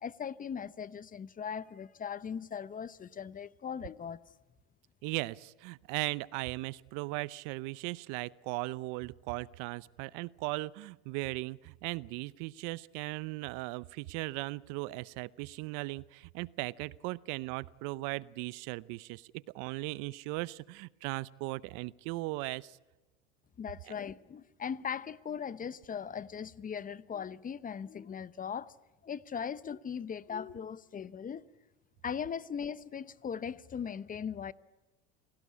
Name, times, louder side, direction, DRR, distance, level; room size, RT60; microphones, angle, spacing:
voice 1, 0.0-4.2 23.6-28.7 29.0-31.4 32.0-34.5, left 7 dB, 25° left, 0.8 m, -39 dB
voice 2, 5.0-22.8, right 22 dB, 65° right, 0.8 m, -38 dB
28.0 x 18.0 x 8.4 m
supercardioid pair, 100°, 33 cm